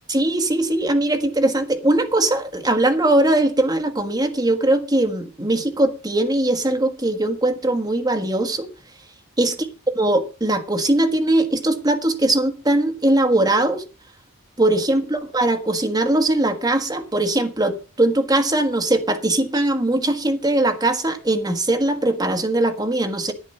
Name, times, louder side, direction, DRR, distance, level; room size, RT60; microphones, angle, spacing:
voice 1, 0.1-8.7 9.4-9.6 9.9-13.8 14.6-23.3, right 1 dB, 20° right, 5 dB, 1.5 m, -20 dB
11.0 x 9.6 x 5.5 m, 0.35 s
head